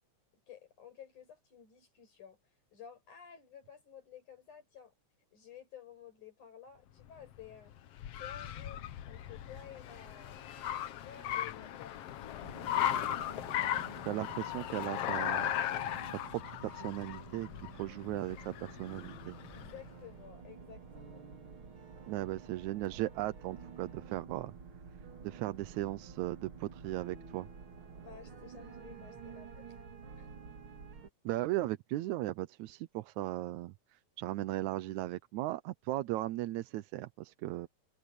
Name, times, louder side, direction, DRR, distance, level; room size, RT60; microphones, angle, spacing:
voice 1, 0.5-2.4 2.7-4.9 5.3-7.7 8.2-10.5 11.0-13.3 19.5-21.3 28.0-29.7 30.1-30.3, left 8 dB, 85° left, 7.9 m, -53 dB
Car, 7.0-19.9, left 11 dB, 65° left, 1.8 m, -37 dB
sound 1, 12.4-31.1, right 5 dB, 45° right, 2.9 m, -51 dB
voice 2, 14.1-15.5 16.2-17.5 17.7-19.4 22.1-24.5 25.2-27.5 31.3-37.7, right 16 dB, 80° right, 2.0 m, -37 dB
omnidirectional pair, 3.4 m